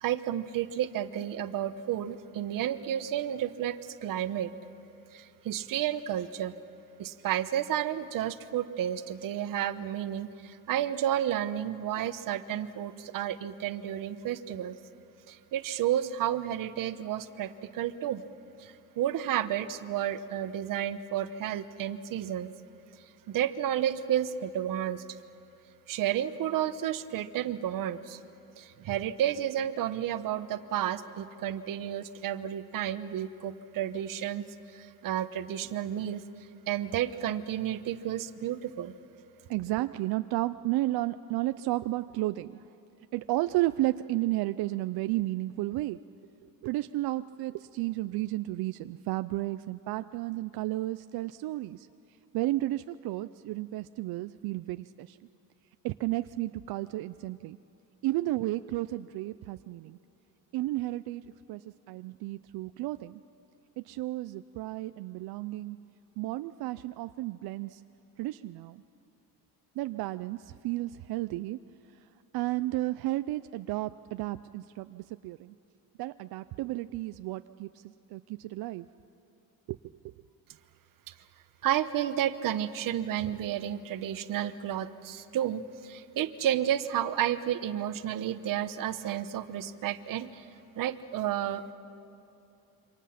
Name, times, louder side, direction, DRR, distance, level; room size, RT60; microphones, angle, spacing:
voice 1, 0.0-4.5 5.1-6.5 7.0-14.8 15.3-18.2 18.6-22.5 23.3-25.0 25.9-28.2 28.6-34.4 34.7-36.2 36.7-38.9 81.6-90.4 90.8-91.7, right 11 dB, 65° right, 12 dB, 1.0 m, -31 dB
voice 2, 39.5-42.6 43.1-46.0 46.4-51.9 52.3-55.2 55.8-57.6 58.0-60.0 60.5-61.2 61.5-63.2 63.8-65.8 66.2-67.8 68.2-68.8 69.8-71.6 72.3-75.5 76.0-77.8 78.1-78.9 79.7-79.8, right 17 dB, 85° right, 11 dB, 0.5 m, -32 dB
27.5 x 25.5 x 5.8 m, 2.8 s
cardioid pair, 165°, 36 cm